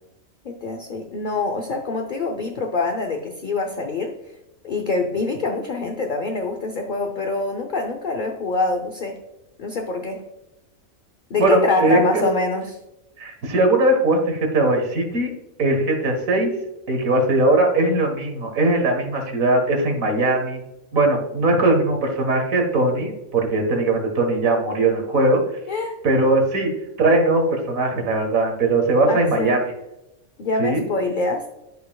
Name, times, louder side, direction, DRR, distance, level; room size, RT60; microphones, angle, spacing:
voice 1, 0.4-4.3 4.6-9.2 9.6-10.2 11.3-12.8 25.7-26.0 29.1-29.6 30.4-31.5, left 3 dB, 45° left, 3 dB, 0.7 m, -25 dB
voice 2, 11.4-12.0 13.2-15.3 15.6-16.5 16.9-20.6 20.9-25.4 26.0-26.7 27.0-29.6 30.6-30.8, right 2 dB, 75° right, 3 dB, 1.9 m, -20 dB
11.5 x 5.5 x 2.3 m, 0.91 s
omnidirectional pair, 1.5 m